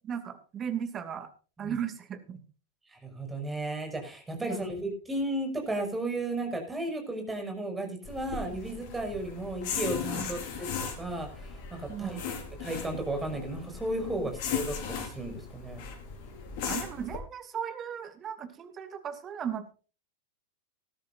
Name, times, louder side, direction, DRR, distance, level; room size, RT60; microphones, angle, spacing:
voice 1, 0.0-1.3 1.6-2.4 4.4-4.6 8.7-8.8 10.1-10.3 11.9-12.2 14.2-14.3 16.6-19.7, right 8 dB, 25° right, 10 dB, 2.5 m, -36 dB
voice 2, 2.9-12.3 12.6-15.8, right 1 dB, 10° right, 4 dB, 6.1 m, -34 dB
sound 1, 8.0-17.2, left 6 dB, 45° left, 4.8 m, -37 dB
19.5 x 13.0 x 2.6 m, 0.36 s
figure-of-eight pair, 90°, 0 cm